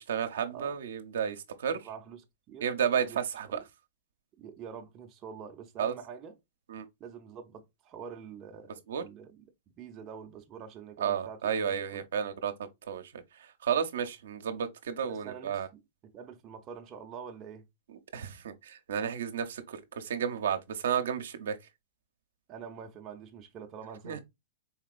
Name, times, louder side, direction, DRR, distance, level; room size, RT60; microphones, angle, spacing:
voice 1, 0.0-1.8 2.6-3.1 3.3-3.6 5.8-5.9 6.7-6.8 8.9-9.0 11.0-12.5 12.9-13.0 13.6-15.7 18.1-21.6 24.0-24.2, right 8 dB, 80° right, 0.7 m, -32 dB
voice 2, 1.7-3.6 4.4-6.4 7.0-12.1 15.0-17.7 22.5-24.2, right 7 dB, 30° right, 0.6 m, -46 dB
4.3 x 2.9 x 2.4 m
hypercardioid pair, 130°, 0 cm